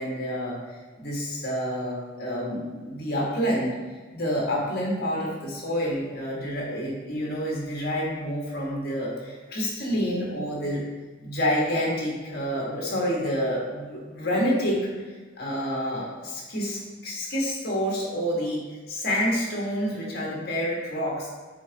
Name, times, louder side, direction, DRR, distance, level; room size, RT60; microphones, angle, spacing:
voice 1, 0.0-3.7 4.1-10.8 11.2-14.9 15.4-21.3, equal, 50° left, -3 dB, 1.6 m, -28 dB
7.7 x 3.8 x 3.5 m, 1.4 s
head